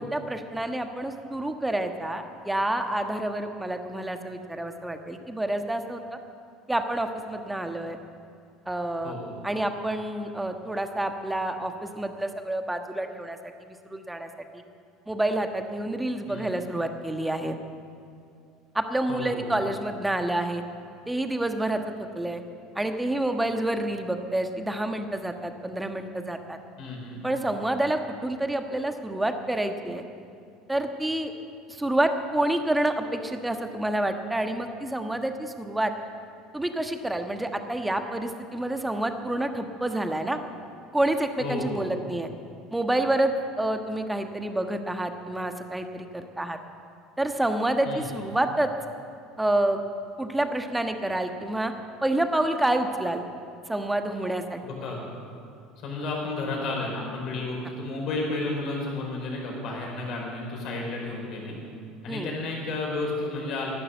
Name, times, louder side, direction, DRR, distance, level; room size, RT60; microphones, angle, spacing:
voice 1, 0.0-6.2 6.7-8.0 8.7-9.1 9.4-14.6 15.1-17.6 18.7-20.6 21.1-22.4 22.7-26.6 27.2-30.0 30.7-31.3 31.7-35.9 36.5-40.4 40.9-42.3 42.7-46.6 47.2-48.7 49.4-49.8 50.2-51.7 52.0-53.2 53.7-54.6 62.1-62.3, right 1 dB, 10° right, 6 dB, 1.4 m, -28 dB
voice 2, 19.1-19.6 26.8-27.3 41.4-41.8 47.8-48.2 54.6-55.0 55.8-61.6 62.0-63.7, left 2 dB, 55° left, -1 dB, 5.0 m, -32 dB
15.0 x 11.5 x 7.9 m, 2.4 s
hypercardioid pair, 65°, 0 cm